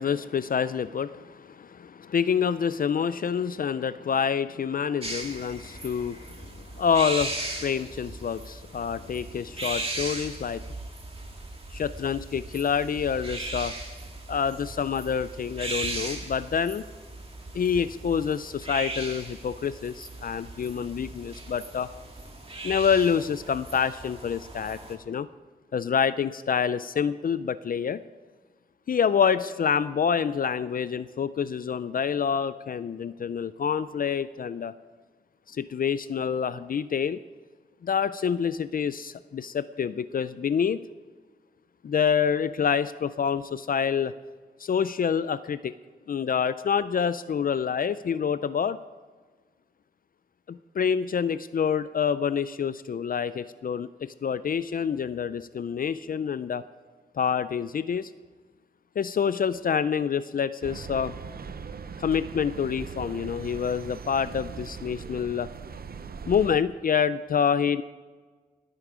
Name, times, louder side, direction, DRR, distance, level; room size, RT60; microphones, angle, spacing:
voice 1, 0.0-10.6 11.7-13.7 14.3-16.8 17.5-21.9 22.6-25.3 25.7-28.0 28.9-34.7 35.5-37.2 37.8-40.8 41.8-44.1 44.6-45.7 46.1-48.8 50.5-53.9 54.2-56.6 57.2-58.1 59.0-61.1 62.0-65.5 66.3-67.8, left 7 dB, 55° left, 15 dB, 0.4 m, -27 dB
sound 1, 5.0-25.0, right 2 dB, 35° right, 2.2 m, -38 dB
sound 2, 60.6-66.6, right 5 dB, 60° right, 0.7 m, -40 dB
20.5 x 8.3 x 5.0 m, 1.4 s
wide cardioid pair, 85°, 17 cm